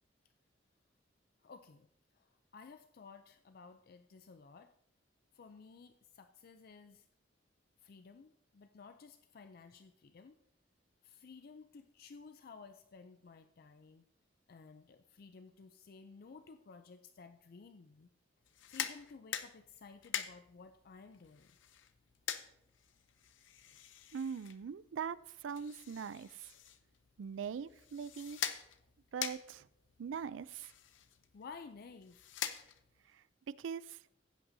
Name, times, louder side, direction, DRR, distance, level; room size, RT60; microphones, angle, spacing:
voice 1, 1.4-1.9 2.1-4.7 5.3-7.1 7.8-10.4 11.0-14.1 14.5-18.1 18.7-21.6 31.3-32.3, left 5 dB, 55° left, 9 dB, 0.4 m, -55 dB
sound 1, 18.4-33.1, left 9 dB, 90° left, 0.7 m, -45 dB
voice 2, 24.1-26.5 27.2-28.4 29.1-29.7 30.0-30.7 33.1-34.0, right 7 dB, 90° right, 18 dB, 0.4 m, -42 dB
15.5 x 8.8 x 2.7 m, 0.77 s
head